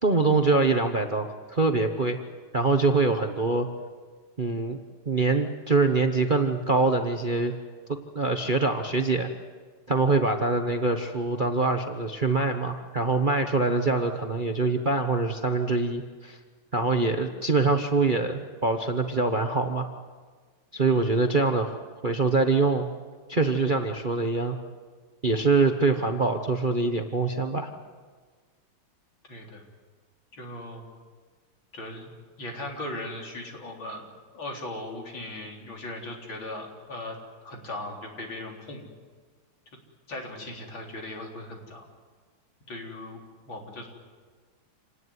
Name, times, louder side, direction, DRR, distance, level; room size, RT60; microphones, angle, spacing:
voice 1, 0.0-2.2 2.5-3.7 4.4-4.8 5.1-7.5 7.9-9.3 9.9-16.4 16.7-19.9 20.7-21.8 22.0-22.9 23.3-24.6 25.2-27.7, right 3 dB, 30° right, 5 dB, 1.0 m, -24 dB
voice 2, 29.3-29.6 30.4-30.8 31.7-32.1 32.4-34.1 34.3-37.2 37.4-38.9 40.1-41.8 42.7-43.2 43.5-43.9, left 1 dB, 70° left, 0 dB, 4.5 m, -38 dB
27.0 x 18.5 x 9.6 m, 1.5 s
omnidirectional pair, 2.2 m